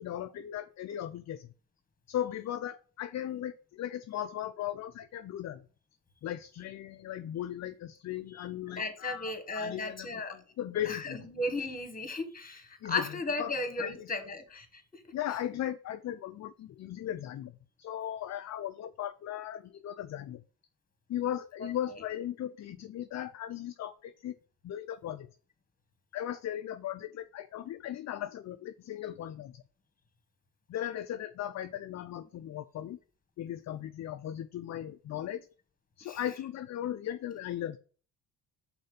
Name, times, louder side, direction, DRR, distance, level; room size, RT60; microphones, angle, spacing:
voice 1, 0.0-1.5 2.1-5.6 6.2-11.2 12.8-13.5 13.8-14.3 15.1-17.5 17.8-20.4 21.1-24.3 24.6-25.3 26.1-29.6 30.7-33.0 33.4-35.5 36.0-37.8, left 11 dB, 45° left, 9 dB, 0.5 m, -37 dB
voice 2, 8.8-10.4 10.8-14.7 36.1-36.2, left 2 dB, 20° left, 7 dB, 1.6 m, -35 dB
5.5 x 4.4 x 5.2 m, 0.40 s
supercardioid pair, 75°, 39 cm